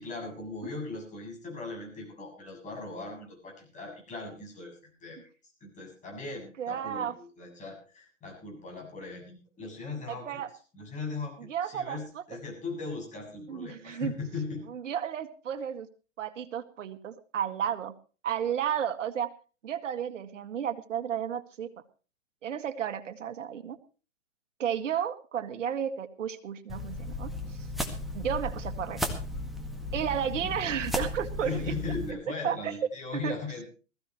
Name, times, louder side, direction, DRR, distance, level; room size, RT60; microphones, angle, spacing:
voice 1, 0.0-5.2 5.6-10.4 10.7-14.6 31.4-33.6, left 3 dB, 20° left, 1 dB, 7.3 m, -39 dB
voice 2, 6.6-7.1 10.1-10.5 11.4-12.2 13.5-14.1 14.7-15.9 16.2-17.9 18.2-19.3 19.6-21.7 22.4-23.8 24.6-27.7 28.1-29.0 29.9-31.7 32.1-32.2 32.4-32.7 33.2-33.3, right 9 dB, 70° right, 10 dB, 1.9 m, -33 dB
sound 1, 26.7-32.1, left 1 dB, ahead, 1.8 m, -35 dB
20.5 x 15.0 x 3.1 m, 0.35 s
hypercardioid pair, 130°, 38 cm